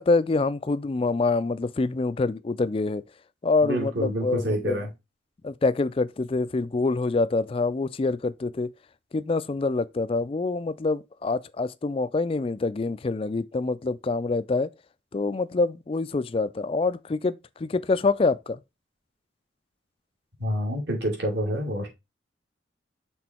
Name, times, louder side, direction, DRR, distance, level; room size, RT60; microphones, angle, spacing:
voice 1, 0.0-3.0 3.4-4.8 5.4-8.7 9.1-14.7 15.1-18.6, left 3 dB, 30° left, 0.3 m, -26 dB
voice 2, 3.6-4.9 20.4-21.9, equal, 65° right, 2.7 m, -27 dB
6.2 x 3.8 x 4.4 m
head